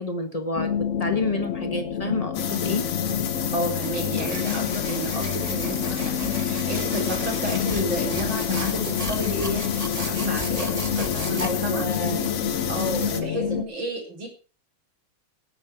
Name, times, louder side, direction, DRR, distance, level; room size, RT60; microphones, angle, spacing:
voice 1, 0.0-2.9 11.4-12.2, left 2 dB, 20° left, 7 dB, 1.2 m, -29 dB
sound 1, 0.6-13.6, left 8 dB, 55° left, 0.8 m, -29 dB
sound 2, 2.3-13.2, left 8 dB, 75° left, 2.0 m, -30 dB
voice 2, 3.5-11.8 12.7-14.3, right 1 dB, 70° right, -1 dB, 5.0 m, -32 dB
sound 3, 4.2-11.5, right 3 dB, 25° right, 0.9 m, -37 dB
18.0 x 8.9 x 4.5 m, 0.37 s
omnidirectional pair, 2.2 m